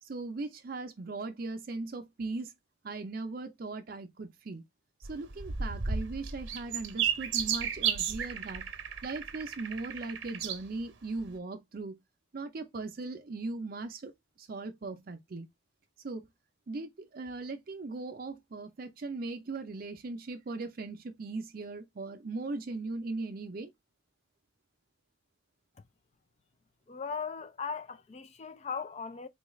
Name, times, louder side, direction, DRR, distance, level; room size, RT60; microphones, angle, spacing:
voice 1, 0.0-2.5 2.8-4.6 5.0-8.7 9.0-12.0 12.3-14.1 14.4-15.5 16.0-16.3 16.7-23.7, right 3 dB, 50° right, 0.4 m, -39 dB
sound 1, 5.0-10.6 11.2-11.3, right 7 dB, 85° right, 0.8 m, -33 dB
voice 2, 26.9-29.3, left 6 dB, 35° left, 0.3 m, -38 dB
4.0 x 2.3 x 3.0 m
head